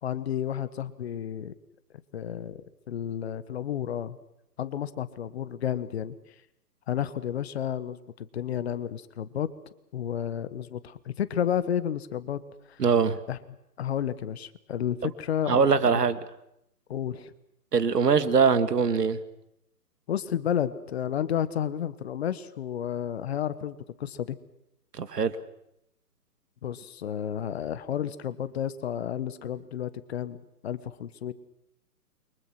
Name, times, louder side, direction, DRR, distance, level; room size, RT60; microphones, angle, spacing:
voice 1, 0.0-1.5 2.1-2.6 2.9-4.2 4.6-6.1 6.9-9.5 9.9-12.4 12.7-12.8 13.3-13.4 13.8-16.0 16.9-17.3 20.1-24.4 26.6-31.3, left 9 dB, 40° left, 14 dB, 1.4 m, -31 dB
voice 2, 12.8-13.2 15.0-15.1 15.4-16.2 17.7-19.2 24.9-25.3, right 5 dB, 75° right, 11 dB, 2.1 m, -22 dB
29.0 x 23.5 x 6.1 m, 0.80 s
hypercardioid pair, 145°, 48 cm